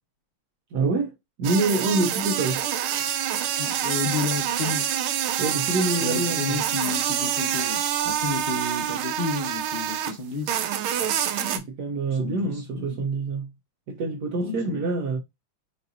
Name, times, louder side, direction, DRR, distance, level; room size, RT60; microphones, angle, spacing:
voice 1, 0.7-1.1 1.4-2.6 5.4-6.6 11.4-13.5 13.9-15.2, right 2 dB, 65° right, 1.0 m, -26 dB
sound 1, 1.4-10.2 10.5-11.6, right 10 dB, 85° right, 1.5 m, -26 dB
voice 2, 3.6-4.9 6.0-10.6 12.1-13.1 14.4-14.9, left 4 dB, 45° left, 0.7 m, -32 dB
5.4 x 2.5 x 2.6 m
omnidirectional pair, 2.3 m